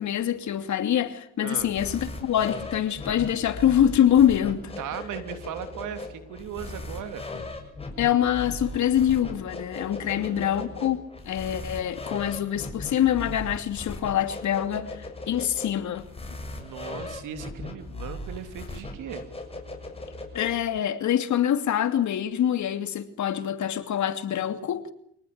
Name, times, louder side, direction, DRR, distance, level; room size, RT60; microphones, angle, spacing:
voice 1, 0.0-4.7 8.0-16.1 20.3-24.9, left 10 dB, 70° left, 2.9 m, -25 dB
sound 1, 1.6-20.8, left 2 dB, 20° left, 7.0 m, -38 dB
voice 2, 4.8-7.3 10.0-11.0 16.6-19.2, right 9 dB, 85° right, 3.3 m, -38 dB
25.5 x 19.0 x 9.8 m
cardioid pair, 90°, 30 cm